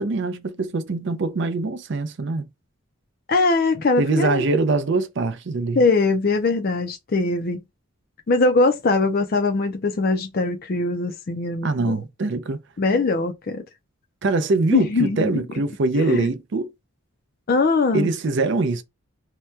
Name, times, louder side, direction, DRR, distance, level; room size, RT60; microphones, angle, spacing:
voice 1, 0.0-2.5 4.0-5.8 11.6-12.6 14.2-16.7 17.9-18.8, right 3 dB, 55° right, 0.4 m, -23 dB
voice 2, 3.3-4.4 5.8-7.6 8.3-12.0 12.8-13.6 14.7-15.4 16.1-16.3 17.5-18.1, left 3 dB, 45° left, 0.4 m, -21 dB
2.8 x 2.2 x 3.2 m
head